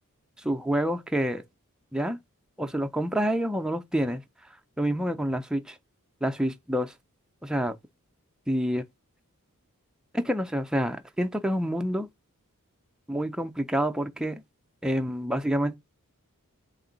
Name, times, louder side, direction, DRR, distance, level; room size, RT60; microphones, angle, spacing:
voice 1, 0.4-1.4 1.9-2.2 2.6-4.2 4.8-5.8 6.2-6.9 7.4-7.8 8.5-8.8 10.1-12.1 13.1-14.4 14.8-15.8, equal, 5° right, 0.4 m, -27 dB
3.7 x 2.5 x 3.8 m
head